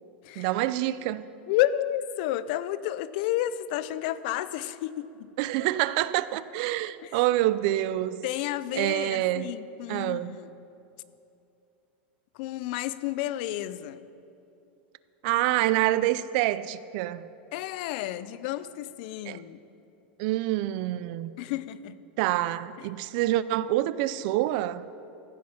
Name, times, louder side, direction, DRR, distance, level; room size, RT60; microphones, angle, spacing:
voice 1, 0.4-1.3 5.4-8.2 8.7-9.5 9.9-10.4 15.2-17.3 19.3-19.4 20.2-21.3 22.2-24.9, right 15 dB, 50° right, 0.4 m, -27 dB
voice 2, 1.5-5.3 7.0-7.2 8.2-10.5 12.3-14.1 17.5-19.6 21.4-22.0, left 13 dB, 55° left, 0.4 m, -31 dB
15.0 x 8.6 x 5.8 m
supercardioid pair, 155°, 6 cm